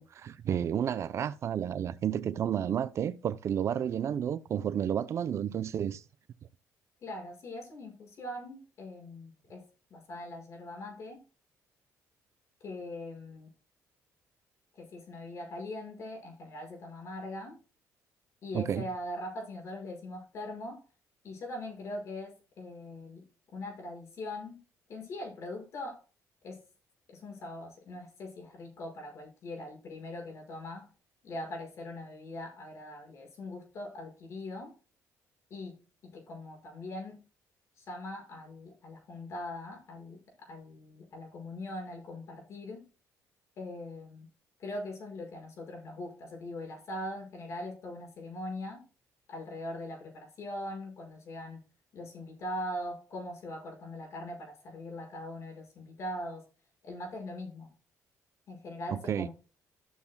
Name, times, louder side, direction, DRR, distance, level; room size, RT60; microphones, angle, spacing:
voice 1, 0.0-6.0 18.5-18.9 58.9-59.3, right 9 dB, 50° right, 0.5 m, -31 dB
voice 2, 7.0-11.2 12.6-13.5 14.8-17.6 18.4-20.8 21.2-23.2 23.5-24.6 24.9-26.0 26.4-26.6 27.1-30.9 31.2-34.7 35.5-37.2 37.8-42.8 43.6-44.3 44.6-48.8 49.3-51.6 51.9-56.4 56.8-57.7 58.5-59.3, left 1 dB, 50° left, 5.6 m, -41 dB
14.5 x 6.9 x 2.2 m
cardioid pair, 120°, 6 cm